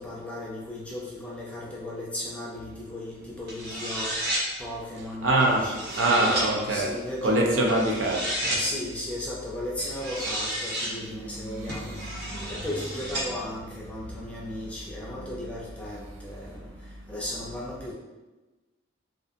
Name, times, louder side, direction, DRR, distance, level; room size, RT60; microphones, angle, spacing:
voice 1, 0.0-4.1 4.6-8.1 8.6-11.9 12.5-16.7 17.1-17.9, left 1 dB, 5° left, -5 dB, 0.4 m, -36 dB
sound 1, 3.5-4.4 5.4-6.5 7.7-8.6 9.8-10.9 11.7-13.3, right 1 dB, 55° right, 0.7 m, -32 dB
voice 2, 5.2-5.7 6.0-6.9 7.2-8.6 10.9-12.5, right 1 dB, 85° right, 0 dB, 0.5 m, -25 dB
2.7 x 2.4 x 2.5 m, 1.1 s
head